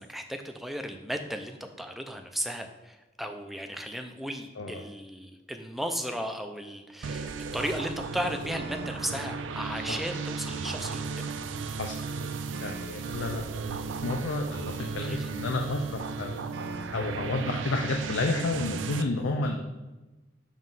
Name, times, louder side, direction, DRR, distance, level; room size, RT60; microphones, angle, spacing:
voice 1, 0.0-11.3 15.0-15.3, equal, ahead, 5 dB, 0.4 m, -35 dB
sound 1, 7.0-19.0, right 4 dB, 80° right, 0.4 m, -35 dB
voice 2, 12.6-16.4 16.9-19.7, left 2 dB, 85° left, 3 dB, 0.6 m, -31 dB
7.5 x 3.1 x 5.4 m, 1.1 s
head